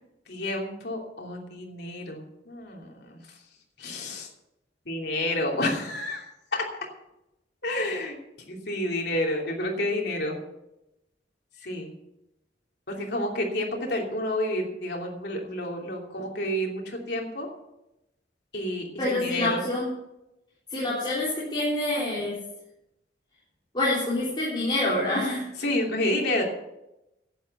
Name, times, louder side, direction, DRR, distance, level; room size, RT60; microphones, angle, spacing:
voice 1, 0.3-3.2 3.8-4.3 4.9-6.3 6.5-6.6 7.6-8.2 8.5-10.4 11.6-11.9 12.9-17.5 18.5-19.6 25.6-26.4, left 1 dB, 60° left, 0 dB, 3.0 m, -29 dB
voice 2, 19.0-19.9 20.7-22.4 23.7-25.5, left 2 dB, 25° left, -7 dB, 3.6 m, -26 dB
11.5 x 9.1 x 8.1 m, 0.90 s
head